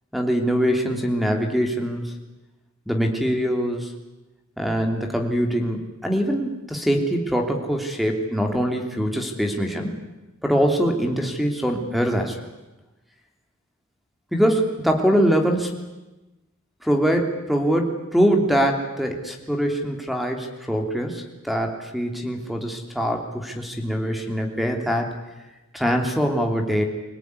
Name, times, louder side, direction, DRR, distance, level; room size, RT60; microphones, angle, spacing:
voice 1, 0.1-2.1 2.9-3.9 4.6-9.9 10.4-12.5 14.3-15.9 16.8-25.1 25.7-26.8, equal, ahead, 4 dB, 3.1 m, -23 dB
25.5 x 17.5 x 9.7 m, 1.1 s
head